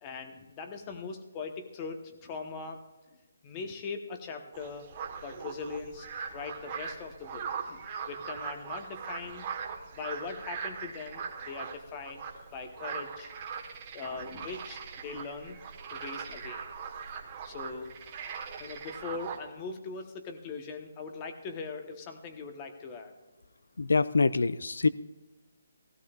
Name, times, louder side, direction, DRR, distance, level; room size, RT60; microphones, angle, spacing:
voice 1, 0.0-2.8 3.4-4.9 5.2-7.8 8.1-9.5 9.9-12.2 12.5-13.3 13.9-15.6 15.9-16.6 17.4-17.9 18.6-23.1, left 4 dB, 20° left, 5 dB, 1.1 m, -40 dB
sound 1, 4.5-19.4, right 6 dB, 25° right, 1.2 m, -40 dB
voice 2, 23.8-24.9, left 4 dB, 85° left, 17 dB, 0.4 m, -25 dB
16.5 x 16.0 x 2.4 m, 1.2 s
hypercardioid pair, 165°, 0 cm